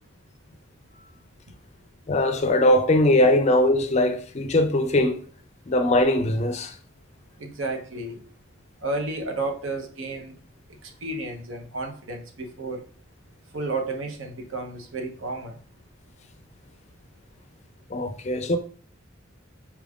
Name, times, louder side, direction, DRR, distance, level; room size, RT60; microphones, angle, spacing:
voice 1, 2.1-5.2 5.7-6.7 17.9-18.6, left 1 dB, 35° left, 0.4 m, -21 dB
voice 2, 7.4-8.2 8.8-10.3 10.8-12.8 13.5-15.6, right 2 dB, 80° right, 0.8 m, -32 dB
4.5 x 2.4 x 3.4 m
head